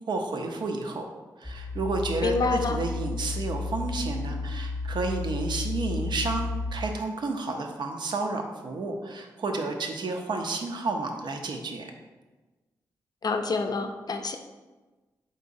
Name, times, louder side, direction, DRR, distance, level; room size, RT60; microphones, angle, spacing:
voice 1, 0.1-1.0 1.4-11.9, right 3 dB, 65° right, 4 dB, 0.6 m, -31 dB
sound 1, 1.4-6.7, left 3 dB, 10° left, 0.6 m, -32 dB
voice 2, 2.2-2.8 13.2-14.4, left 4 dB, 50° left, 6 dB, 0.4 m, -27 dB
3.9 x 3.8 x 2.6 m, 1.2 s
supercardioid pair, 40°, 8 cm